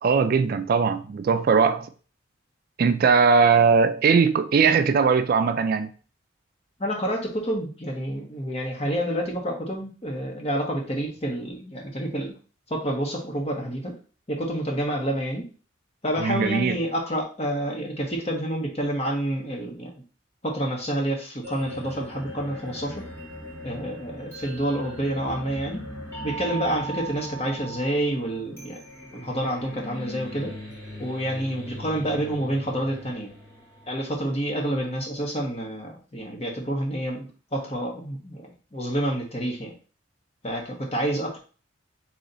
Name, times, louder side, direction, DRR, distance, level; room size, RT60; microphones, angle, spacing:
voice 1, 0.0-1.9 2.8-5.9 16.2-16.8, right 5 dB, 50° right, 0.3 m, -20 dB
voice 2, 6.8-12.3 12.7-13.9 14.3-15.4 16.0-19.9 20.4-23.1 23.6-25.8 26.2-28.8 29.1-30.5 31.0-33.3 33.9-39.7 40.4-41.4, right 1 dB, 30° left, 1.1 m, -28 dB
sound 1, 21.4-34.4, equal, 10° left, 1.7 m, -39 dB
4.0 x 3.1 x 4.0 m
head